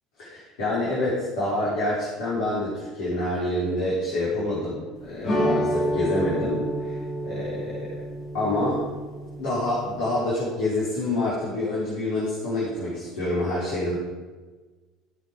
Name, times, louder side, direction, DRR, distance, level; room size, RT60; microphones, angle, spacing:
voice 1, 0.2-8.0 8.3-8.8 9.4-14.0, left 1 dB, 65° left, -8 dB, 4.1 m, -27 dB
sound 1, 5.2-10.1, equal, 45° left, 3.8 m, -29 dB
15.0 x 7.8 x 5.1 m, 1.3 s
figure-of-eight pair, 65°, 0 cm